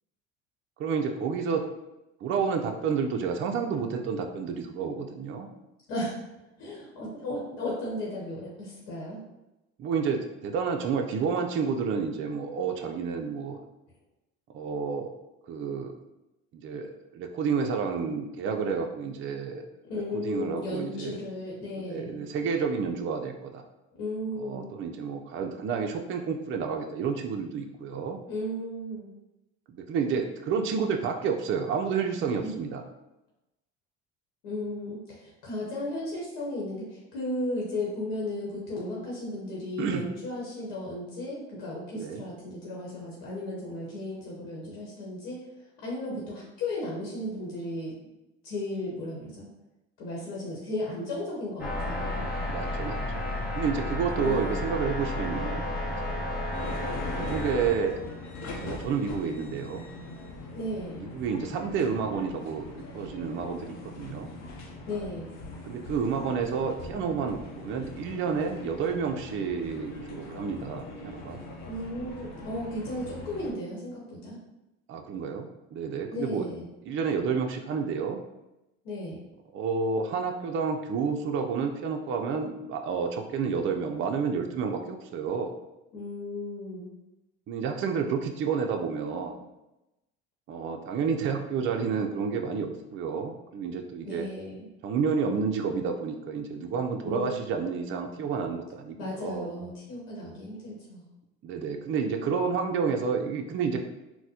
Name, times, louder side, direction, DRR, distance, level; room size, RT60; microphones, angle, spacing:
voice 1, 0.8-1.7 2.2-5.5 9.8-13.6 14.5-15.1 15.5-15.9 16.5-19.6 20.1-21.2 21.8-23.6 24.4-28.2 29.7-32.8 39.8-40.1 42.0-42.2 52.5-55.7 56.0-56.2 57.2-57.9 58.6-59.9 61.0-64.3 65.6-71.4 74.9-76.5 76.9-78.2 79.5-85.5 87.5-89.5 90.5-94.3 94.8-99.5 101.4-103.8, right 5 dB, 40° right, 4 dB, 0.4 m, -30 dB
voice 2, 6.6-9.2 19.9-22.2 24.0-24.7 28.2-29.1 32.3-32.6 34.4-45.4 45.8-47.9 48.4-49.4 50.0-52.4 54.2-54.7 60.5-61.0 64.9-65.4 71.7-74.4 76.1-76.7 78.8-79.2 85.9-86.9 94.0-94.7 97.0-97.4 99.0-101.0, left 1 dB, 80° left, -5 dB, 1.0 m, -35 dB
sound 1, 51.6-57.7, left 1 dB, 30° left, 0.9 m, -32 dB
sound 2, 56.5-73.5, left 2 dB, 60° left, 0.7 m, -41 dB
4.0 x 2.1 x 2.7 m, 0.95 s
supercardioid pair, 85°, 30 cm